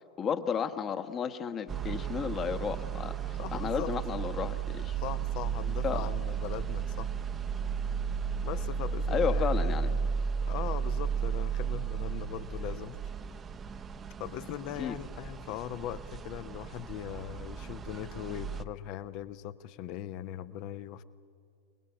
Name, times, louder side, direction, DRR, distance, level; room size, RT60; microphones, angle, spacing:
voice 1, 0.2-5.0 5.8-6.0 9.1-9.9 14.8-15.0, left 7 dB, 25° left, 9 dB, 1.2 m, -33 dB
sound 1, 1.7-18.6, right 6 dB, 20° right, 0.9 m, -34 dB
voice 2, 3.4-3.9 5.0-7.1 8.4-10.0 10.4-13.0 14.2-21.0, left 12 dB, 40° left, 15 dB, 0.9 m, -40 dB
29.0 x 20.0 x 8.7 m, 2.3 s
figure-of-eight pair, 90°, 0 cm